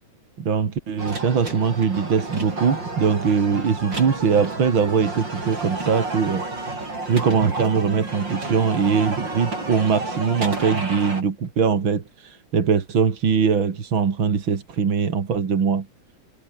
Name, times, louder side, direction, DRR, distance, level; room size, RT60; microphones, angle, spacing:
voice 1, 0.4-6.5 7.1-15.9, right 6 dB, 80° right, 3.1 m, -21 dB
sound 1, 1.0-11.2, right 2 dB, 65° right, 7.7 m, -31 dB
omnidirectional pair, 2.2 m